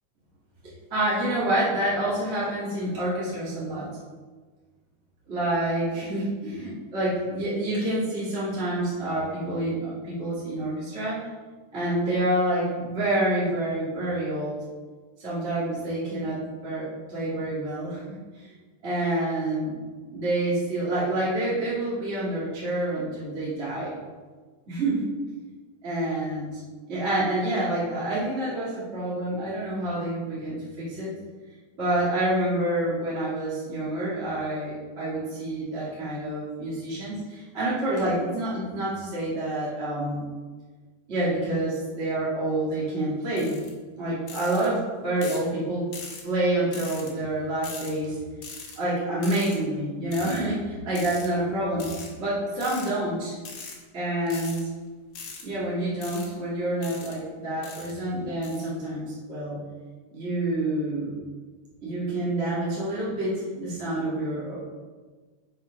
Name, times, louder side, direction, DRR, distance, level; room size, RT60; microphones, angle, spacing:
voice 1, 0.9-3.9 5.3-11.3 11.7-14.6 15.2-18.0 18.3-18.5 18.8-19.8 20.1-24.0 24.7-25.1 25.8-26.6 26.9-31.1 31.8-40.2 41.1-43.6 44.0-45.9 46.2-48.2 48.7-51.9 52.2-53.4 53.9-54.7 55.4-59.6 60.1-61.1 61.8-64.5, right 1 dB, 25° right, -8 dB, 1.6 m, -28 dB
sound 1, 43.4-43.7 44.3-44.7 45.2-45.5 45.9-46.2 46.7-47.1 47.6-47.9 48.4-48.8 49.2-49.6 50.1-50.4 50.9-51.3 51.8-52.1 52.6-52.9 53.4-53.8 54.3-54.6 55.1-55.4 56.0-56.3 56.8-57.2 57.6-57.9 58.4-58.7, left 5 dB, 60° left, 1.4 m, -40 dB
6.3 x 5.9 x 4.6 m, 1.4 s
omnidirectional pair, 3.8 m